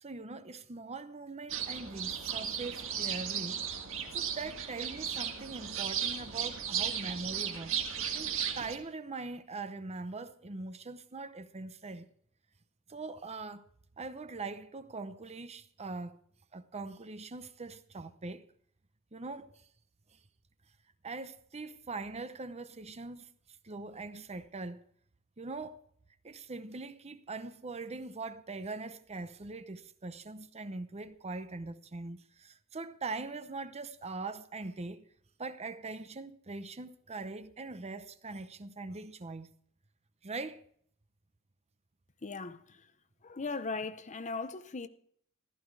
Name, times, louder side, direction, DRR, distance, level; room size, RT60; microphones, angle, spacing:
voice 1, 0.0-3.6 4.1-7.8 8.1-12.1 12.9-13.6 14.0-16.2 16.5-18.4 19.1-19.7 20.1-20.2 21.0-23.3 23.6-24.8 25.4-25.8 26.2-35.1 35.4-39.5 40.2-40.6, right 3 dB, 30° right, 0.8 m, -42 dB
sound 1, 1.5-8.8, right 8 dB, 65° right, 1.8 m, -35 dB
voice 2, 42.2-42.9 43.2-44.9, left 4 dB, 35° left, 0.7 m, -38 dB
15.5 x 13.5 x 4.8 m
head